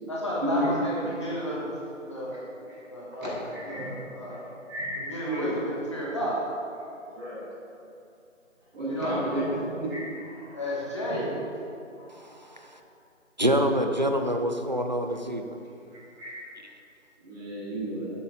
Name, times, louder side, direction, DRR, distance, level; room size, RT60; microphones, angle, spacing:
voice 1, 0.1-1.7 2.0-2.4 2.9-3.3 3.7-4.5 5.0-6.4 8.8-9.4 10.5-11.3, equal, 20° left, -6 dB, 1.7 m, -32 dB
voice 2, 3.4-3.9 4.7-5.0 5.2-5.5 7.1-7.4 8.7-10.6 12.0-12.2 16.1-16.5 17.2-18.1, right 1 dB, 5° right, -18 dB, 3.4 m, -32 dB
voice 3, 13.4-15.5, equal, 35° right, 5 dB, 0.7 m, -26 dB
13.0 x 11.5 x 4.0 m, 2.7 s
figure-of-eight pair, 175°, 39 cm